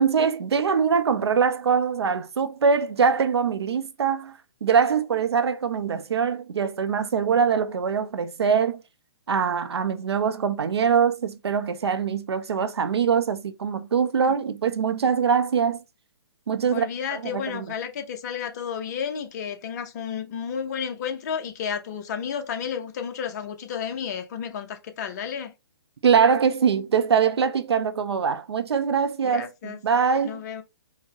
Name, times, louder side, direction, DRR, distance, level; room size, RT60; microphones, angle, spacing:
voice 1, 0.0-8.8 9.3-15.8 16.5-17.7 26.0-30.4, right 6 dB, 75° right, 0.6 m, -23 dB
voice 2, 16.7-25.5 29.2-29.8 30.2-30.6, left 7 dB, 40° left, 0.7 m, -32 dB
4.7 x 2.2 x 2.8 m
hypercardioid pair, 145°, 14 cm